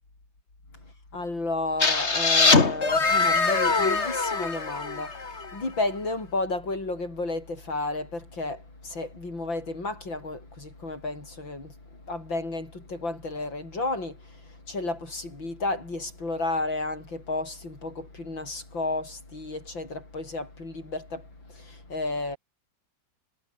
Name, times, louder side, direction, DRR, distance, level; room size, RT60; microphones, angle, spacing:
voice 1, 1.1-11.7 12.1-22.4, left 2 dB, 85° left, 7.8 m, -32 dB
sound 1, 1.8-5.5, left 4 dB, 35° left, 2.5 m, -23 dB
omnidirectional pair, 2.0 m